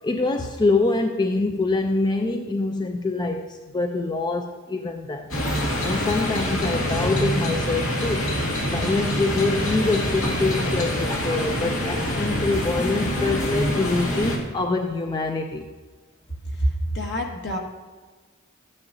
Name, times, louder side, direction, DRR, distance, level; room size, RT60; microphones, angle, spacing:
voice 1, 0.0-5.3 5.8-8.3 8.7-15.7, left 3 dB, 20° left, 4 dB, 0.4 m, -25 dB
sound 1, 5.3-14.4, equal, 85° left, 2.2 m, -25 dB
voice 2, 16.6-17.6, equal, 60° left, 0 dB, 1.6 m, -26 dB
13.5 x 9.8 x 2.7 m, 1.4 s
head